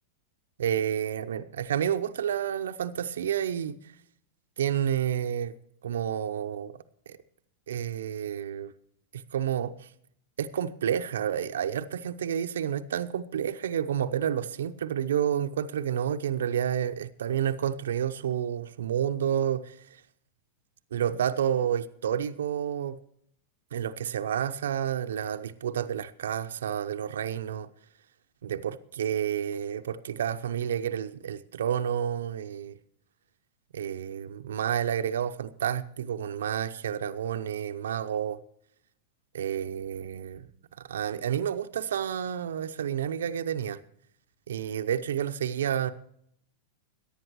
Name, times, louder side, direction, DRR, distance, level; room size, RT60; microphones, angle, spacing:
voice 1, 0.6-3.8 4.6-5.5 5.8-6.8 7.1-7.2 7.7-8.7 9.1-9.9 10.4-19.8 20.9-23.0 23.7-27.7 28.4-32.8 33.7-38.4 39.3-40.5 40.9-43.8 44.5-45.9, right 9 dB, 75° right, 0.7 m, -30 dB
22.5 x 10.0 x 3.1 m
hypercardioid pair, 100°, 0 cm